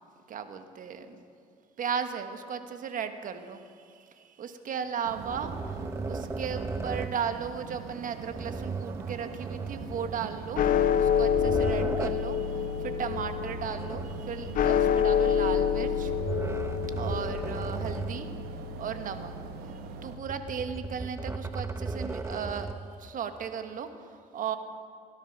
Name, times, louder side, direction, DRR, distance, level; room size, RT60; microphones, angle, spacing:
voice 1, 0.3-1.2 1.8-3.6 3.9-10.6 10.9-16.1 17.0-18.3 18.8-19.3 19.6-22.7 23.0-24.6, right 7 dB, 55° right, 8 dB, 1.3 m, -36 dB
sound 1, 5.0-20.2, right 7 dB, 75° right, 1.1 m, -43 dB
sound 2, 5.2-7.2 8.3-10.4 11.0-12.3 13.1-14.6 15.8-18.3 18.7-18.8 20.1-22.9, right 3 dB, 15° right, 0.7 m, -36 dB
sound 3, 10.6-21.0, left 8 dB, 60° left, 0.7 m, -28 dB
17.0 x 12.0 x 5.9 m, 2.3 s
supercardioid pair, 85°, 16 cm